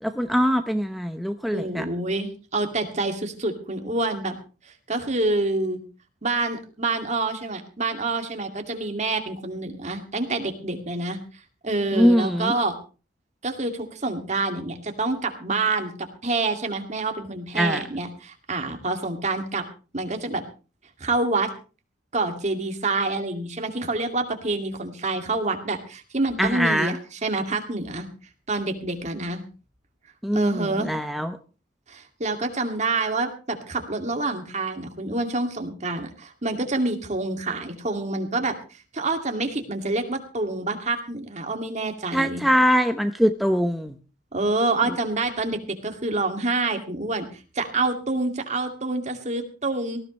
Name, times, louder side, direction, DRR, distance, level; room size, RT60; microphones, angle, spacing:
voice 1, 0.0-1.9 11.9-12.5 17.6-17.8 26.4-27.0 30.2-31.4 42.1-43.9 44.9-45.0, equal, ahead, 7 dB, 0.7 m, -22 dB
voice 2, 1.5-4.4 4.6-5.8 6.2-11.2 11.6-12.7 13.4-19.7 19.9-20.4 21.0-21.5 22.1-28.1 28.5-29.4 30.3-30.9 31.9-38.6 38.9-42.5 44.3-47.3 47.6-50.0, right 2 dB, 40° right, 5 dB, 2.4 m, -27 dB
18.5 x 15.0 x 3.2 m, 0.35 s
head